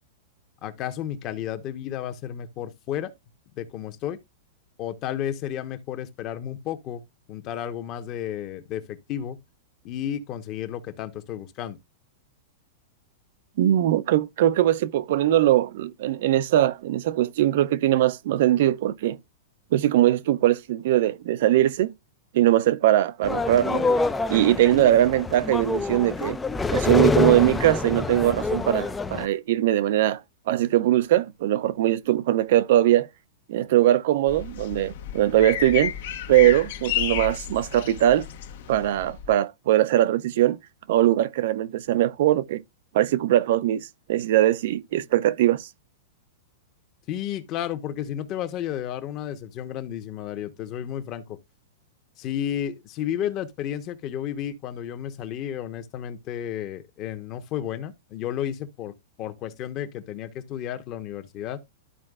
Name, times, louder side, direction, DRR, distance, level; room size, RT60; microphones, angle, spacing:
voice 1, 0.6-3.1 3.6-4.2 4.8-7.0 7.3-9.4 9.8-11.8 47.1-51.4 52.2-61.6, left 10 dB, 35° left, 1.0 m, -32 dB
voice 2, 13.6-19.2 19.7-21.9 22.3-23.9 24.3-26.4 26.7-30.2 30.5-33.1 33.5-35.9 36.3-38.3 38.7-40.6 40.9-42.6 42.9-45.7, right 13 dB, 60° right, 0.5 m, -21 dB
sound 1, 23.2-29.3, left 3 dB, 10° left, 0.4 m, -26 dB
sound 2, 34.3-39.3, left 11 dB, 65° left, 1.1 m, -32 dB
12.5 x 4.4 x 2.4 m
supercardioid pair, 150°, 0 cm